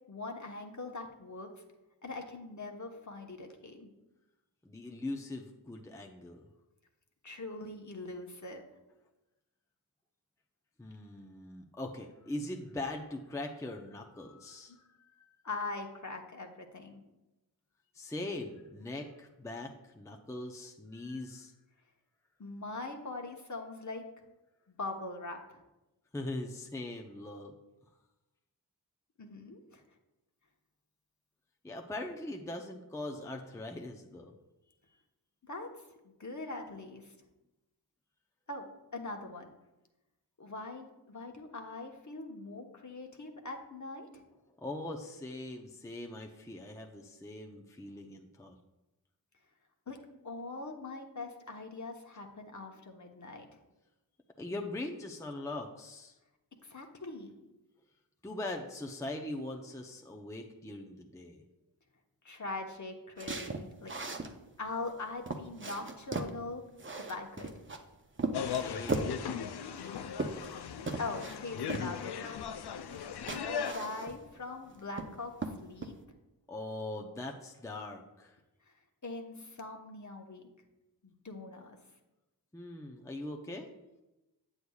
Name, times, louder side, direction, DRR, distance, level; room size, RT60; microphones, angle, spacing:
voice 1, 0.1-1.5 2.0-3.9 7.2-8.6 14.7-14.8 15.4-17.0 22.4-24.0 24.7-25.6 29.2-29.8 35.4-35.7 36.0-37.1 38.5-38.7 38.9-39.5 40.4-44.2 49.9-50.0 50.2-53.5 56.6-57.3 62.2-63.9 64.6-66.6 67.0-67.6 71.0-72.5 72.8-72.9 73.3-75.9 79.0-80.5 81.0-81.8, left 3 dB, 45° left, 2 dB, 1.1 m, -42 dB
voice 2, 4.6-6.5 10.8-14.8 17.9-19.7 19.9-21.5 26.1-27.5 31.6-34.4 44.6-48.6 54.4-56.2 58.2-61.4 68.4-69.1 76.5-78.3 82.5-83.7, left 2 dB, 5° left, 2 dB, 0.6 m, -41 dB
sound 1, 63.2-64.3 64.9-65.0 65.3-66.4 66.8-67.8 68.2-69.2 69.8-70.6 70.9-71.4 71.7-71.9 72.9-73.0 73.3-74.3 74.7-75.1 75.4-75.9, right 3 dB, 30° right, 0.7 m, -37 dB
sound 2, 68.3-73.7, left 7 dB, 65° left, 0.5 m, -38 dB
8.2 x 7.9 x 2.4 m, 1.0 s
cardioid pair, 45°, 42 cm